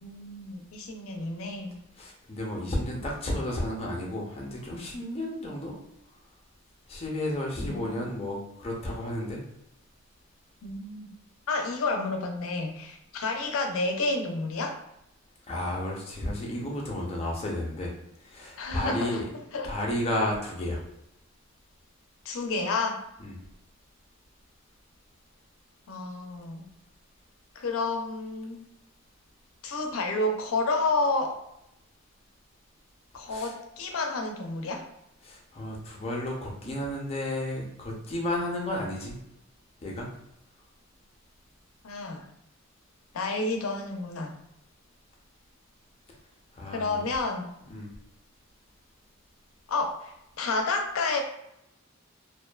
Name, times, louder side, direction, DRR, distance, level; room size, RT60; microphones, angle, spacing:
voice 1, 0.0-1.8 7.6-8.1 10.6-11.1 11.5-14.8 18.6-19.2 19.5-19.7 22.3-23.0 25.9-26.7 27.6-28.6 29.6-31.3 33.1-34.9 41.8-42.2 43.1-44.4 46.7-47.5 49.7-51.2, left 3 dB, 85° left, 3 dB, 0.5 m, -30 dB
voice 2, 2.0-5.8 6.9-9.4 15.5-17.9 18.2-19.2 19.6-20.8 23.2-23.3 33.3-33.5 35.2-39.2 39.8-40.1 46.6-47.0 47.7-47.9, left 1 dB, 30° left, -2 dB, 0.5 m, -32 dB
2.5 x 2.2 x 2.2 m, 0.82 s
head